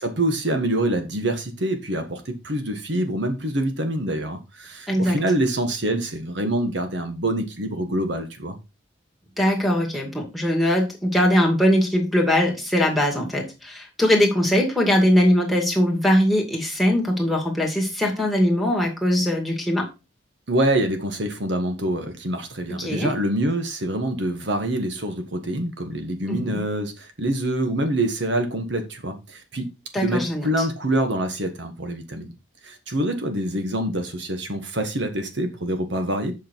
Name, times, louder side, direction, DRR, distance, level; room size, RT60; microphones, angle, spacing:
voice 1, 0.0-8.6 20.5-29.7 30.0-32.3 32.6-36.3, right 1 dB, 60° right, 1.4 m, -25 dB
voice 2, 4.9-5.2 9.4-19.9 22.7-23.1 26.3-26.6 29.9-30.7, equal, ahead, 2.3 m, -21 dB
8.0 x 6.4 x 4.5 m
head